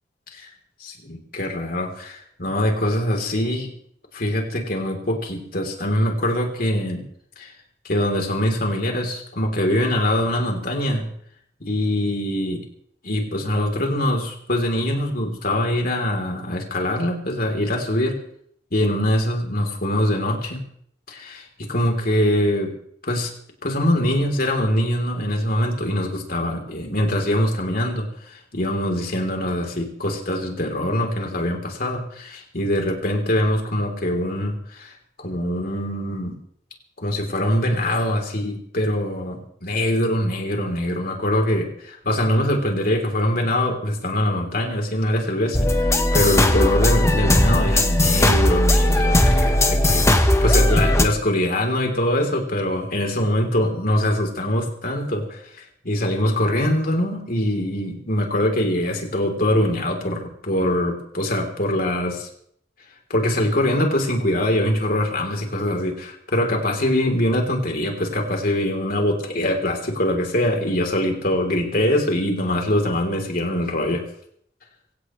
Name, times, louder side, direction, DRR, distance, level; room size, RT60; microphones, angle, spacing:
voice 1, 0.8-3.7 4.1-7.0 7.4-7.5 7.8-11.1 11.6-12.6 13.0-18.2 18.7-20.6 21.1-22.7 23.0-23.3 23.6-34.9 35.2-36.4 37.0-62.3 63.1-74.0, left 1 dB, 55° left, 2 dB, 3.8 m, -23 dB
sound 1, 45.5-51.1, left 1 dB, 15° left, 1.3 m, -17 dB
24.5 x 17.0 x 3.3 m, 0.66 s
head